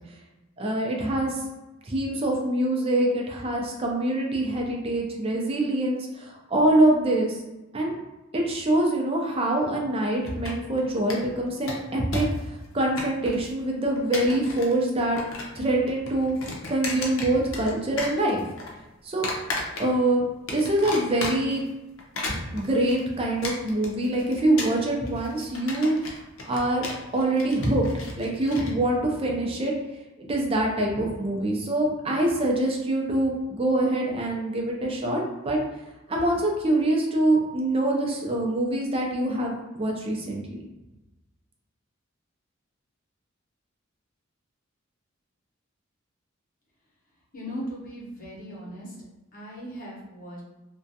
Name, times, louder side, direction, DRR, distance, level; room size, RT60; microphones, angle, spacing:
voice 1, 0.6-1.4 1.8-7.4 7.7-8.0 8.3-15.2 15.5-16.3 16.7-18.4 19.0-19.3 19.8-20.2 20.5-21.6 22.3-26.9 27.1-29.7 30.2-35.6 36.1-40.7, right 1 dB, 30° right, 0 dB, 0.5 m, -25 dB
sound 1, 10.3-10.8 11.1-11.2 11.5-12.4 12.6-13.5 14.0-14.7 15.0-15.6 15.9-17.7 18.0-18.7 19.2-20.1 20.5-21.6 22.0-28.7, left 3 dB, 85° left, 0.6 m, -34 dB
voice 2, 47.3-48.9 49.3-50.4, equal, 45° left, -5 dB, 0.8 m, -38 dB
2.4 x 2.2 x 2.6 m, 1.1 s
head